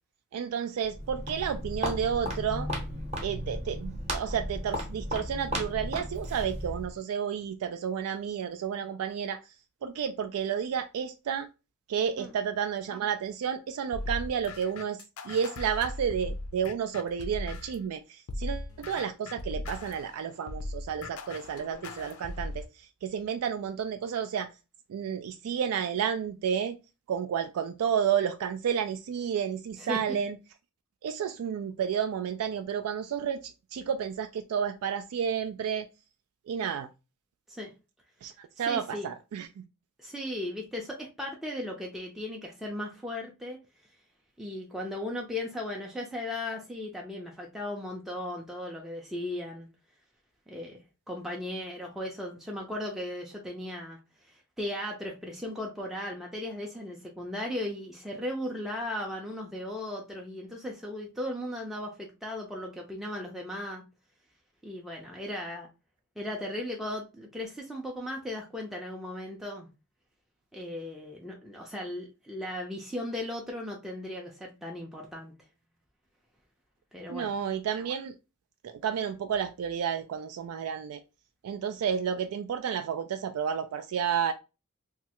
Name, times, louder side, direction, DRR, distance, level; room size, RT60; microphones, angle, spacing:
voice 1, 0.3-2.7 3.2-9.4 9.8-11.5 11.9-15.0 15.2-24.5 24.9-26.8 27.1-30.4 31.0-35.9 36.5-36.9 38.2-39.6 77.1-78.1 78.6-81.0 81.4-84.3, right 8 dB, 80° right, 0.3 m, -31 dB
Walk footsteps, 0.8-7.0, equal, 30° right, 0.8 m, -35 dB
sound 1, 13.9-17.9 18.3-22.7, left 2 dB, 75° left, 0.5 m, -38 dB
voice 2, 29.8-30.2 37.5-37.7 38.7-39.1 40.0-43.6 44.4-49.7 50.5-50.8 51.1-54.0 54.3-63.8 64.6-65.7 66.2-69.7 70.5-75.3 76.9-77.3, left 1 dB, ahead, 0.4 m, -37 dB
3.1 x 2.3 x 2.8 m
head